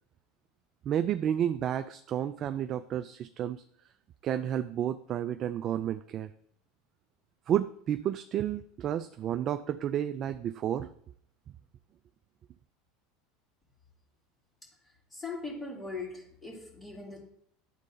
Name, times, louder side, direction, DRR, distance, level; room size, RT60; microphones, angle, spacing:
voice 1, 0.9-3.6 4.2-6.3 7.5-10.9, right 10 dB, 45° right, 11 dB, 0.3 m, -31 dB
voice 2, 15.1-17.2, left 3 dB, 15° left, -3 dB, 2.5 m, -40 dB
10.5 x 3.8 x 3.8 m, 0.66 s
supercardioid pair, 100°, 0 cm